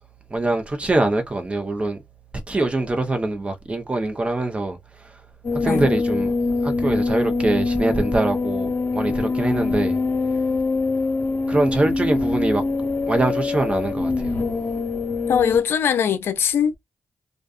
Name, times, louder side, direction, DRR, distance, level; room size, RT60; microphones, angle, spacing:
voice 1, 0.3-2.0 2.5-4.8 5.5-6.3 6.6-10.0 11.5-14.3, right 2 dB, 30° right, 0.9 m, -23 dB
sound 1, 5.4-15.6, left 3 dB, 50° left, 1.0 m, -24 dB
voice 2, 15.3-16.8, left 8 dB, 75° left, 0.4 m, -21 dB
2.4 x 2.3 x 2.4 m
supercardioid pair, 50°, 4 cm